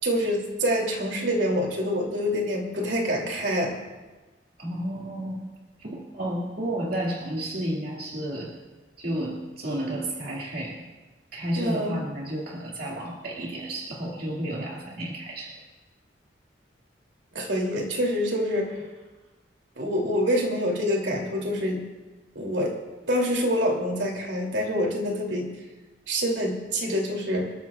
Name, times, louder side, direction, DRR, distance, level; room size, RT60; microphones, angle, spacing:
voice 1, 0.0-3.8 11.6-12.0 17.3-18.8 19.8-21.8 22.3-22.8 23.1-25.5 26.1-27.5, equal, 80° right, 0 dB, 2.7 m, -26 dB
voice 2, 4.6-5.5 5.8-8.5 9.0-10.8 11.3-15.5, right 1 dB, 60° right, -3 dB, 2.1 m, -31 dB
27.5 x 13.5 x 2.4 m, 1.2 s
head